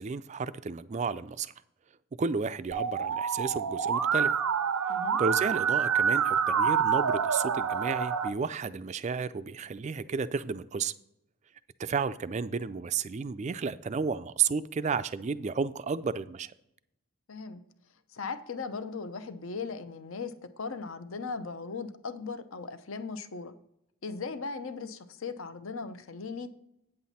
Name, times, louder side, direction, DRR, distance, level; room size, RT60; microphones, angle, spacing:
voice 1, 0.0-1.5 2.2-4.3 5.2-10.9 11.8-16.5, right 5 dB, 30° right, 14 dB, 0.3 m, -32 dB
Musical instrument, 2.7-8.3, right 7 dB, 85° right, 0.5 m, -27 dB
voice 2, 17.3-17.6 18.1-23.5 24.0-26.5, left 4 dB, 65° left, 10 dB, 0.7 m, -38 dB
9.0 x 7.6 x 4.2 m, 0.80 s
head